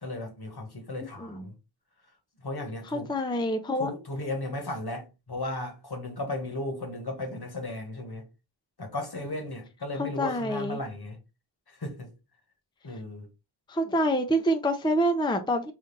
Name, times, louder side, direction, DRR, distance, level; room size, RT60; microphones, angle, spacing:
voice 1, 0.0-1.5 2.4-3.1 3.8-8.2 8.8-11.2 11.8-12.1 12.8-13.3, left 2 dB, 55° left, 1.3 m, -35 dB
voice 2, 1.2-1.5 2.8-3.9 9.9-10.8 13.7-15.7, equal, 10° left, 0.5 m, -27 dB
3.6 x 2.6 x 3.9 m
wide cardioid pair, 55°, 45 cm